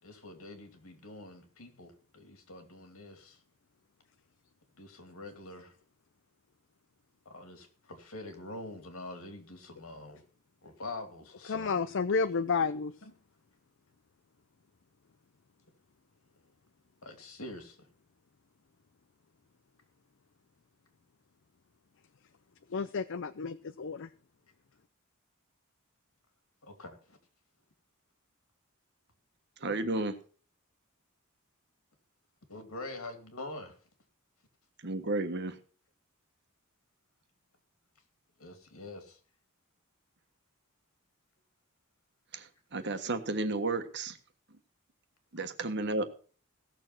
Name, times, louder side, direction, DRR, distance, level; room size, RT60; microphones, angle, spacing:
voice 1, 0.0-3.4 4.8-5.8 7.2-10.2 10.6-12.2 13.0-13.1 16.4-16.5 17.0-17.9 26.6-27.2 32.5-33.8 38.4-39.2, left 2 dB, 85° left, 2.8 m, -45 dB
voice 2, 11.5-12.9 22.7-24.1, left 5 dB, 60° left, 0.5 m, -31 dB
voice 3, 29.6-30.2 34.8-35.6 42.3-44.2 45.3-46.0, right 2 dB, 55° right, 1.4 m, -32 dB
16.5 x 6.9 x 5.9 m
head